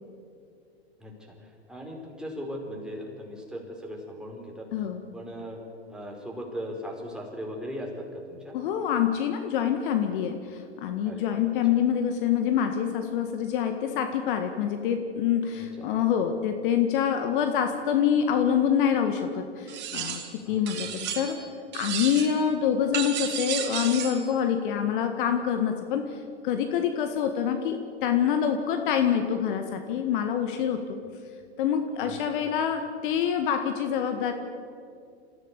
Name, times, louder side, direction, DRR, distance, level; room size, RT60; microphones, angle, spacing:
voice 1, 1.0-4.7 5.1-5.6 5.9-8.5 11.0-11.3 15.6-15.8 20.4-20.6 32.0-32.2, equal, ahead, -1 dB, 4.9 m, -38 dB
voice 2, 4.7-5.0 8.5-21.4 21.7-26.0 26.4-31.0 31.6-34.3, left 8 dB, 50° left, 6 dB, 1.8 m, -26 dB
sound 1, 19.7-20.4 20.7-21.5 21.7-22.4 22.9-24.3, right 8 dB, 30° right, 2.6 m, -33 dB
27.5 x 15.5 x 8.3 m, 2.4 s
figure-of-eight pair, 100°, 33 cm